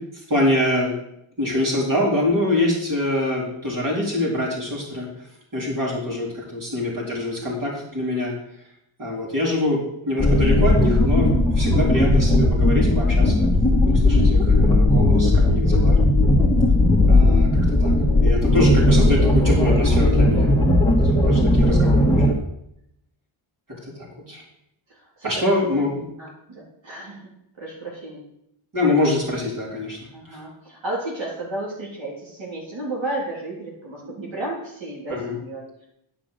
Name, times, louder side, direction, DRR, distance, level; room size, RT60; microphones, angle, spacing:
voice 1, 0.3-1.0 1.4-5.1 5.5-8.3 9.0-13.5 13.9-16.0 17.1-17.9 18.2-20.5 20.8-21.0 21.2-22.3 24.0-24.4 25.2-26.0 28.7-30.0 30.3-30.4 35.1-35.4, left 1 dB, 40° right, -4 dB, 4.5 m, -24 dB
sound 1, 10.2-22.3, left 1 dB, 5° left, 1.8 m, -17 dB
voice 2, 13.9-14.5 24.9-25.5 26.2-27.2 27.6-28.2 30.1-35.9, right 2 dB, 65° right, -6 dB, 3.8 m, -33 dB
11.0 x 6.0 x 6.6 m, 0.78 s
wide cardioid pair, 95°, 49 cm